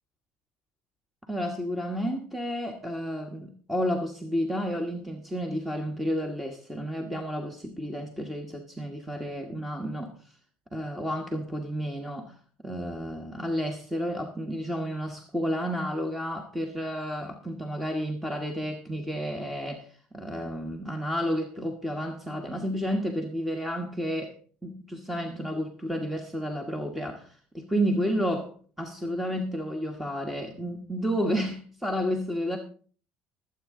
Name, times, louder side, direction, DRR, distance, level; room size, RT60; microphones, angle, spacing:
voice 1, 1.3-10.1 10.7-12.3 12.6-24.4 24.6-28.5 28.8-32.6, equal, 5° right, 4 dB, 1.3 m, -31 dB
20.5 x 8.2 x 3.8 m, 0.43 s
cardioid pair, 130°, 4 cm